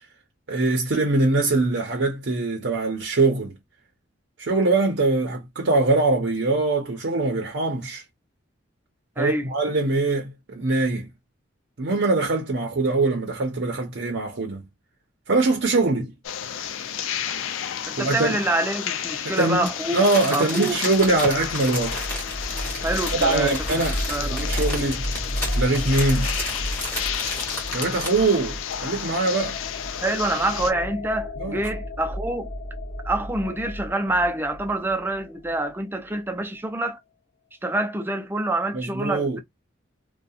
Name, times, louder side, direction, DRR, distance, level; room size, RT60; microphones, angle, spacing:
voice 1, 0.5-3.6 4.4-8.0 9.2-11.1 11.8-14.6 15.3-16.1 18.0-18.4 19.2-19.7 19.9-22.0 23.1-24.0 24.3-25.0 25.6-26.3 27.7-29.6 31.4-31.6 38.7-39.4, right 3 dB, 65° right, 0.6 m, -23 dB
voice 2, 9.2-9.5 17.9-20.1 20.3-20.8 22.8-24.5 30.0-32.5 33.0-37.0 37.6-39.4, right 2 dB, 10° right, 0.4 m, -26 dB
sound 1, 16.2-30.7, left 9 dB, 80° left, 0.4 m, -32 dB
Crumpling crinkling, 19.6-28.3 28.7-28.8, left 1 dB, 10° left, 1.3 m, -33 dB
sound 2, 20.7-35.5, equal, 40° left, 0.7 m, -33 dB
2.7 x 2.1 x 2.3 m
head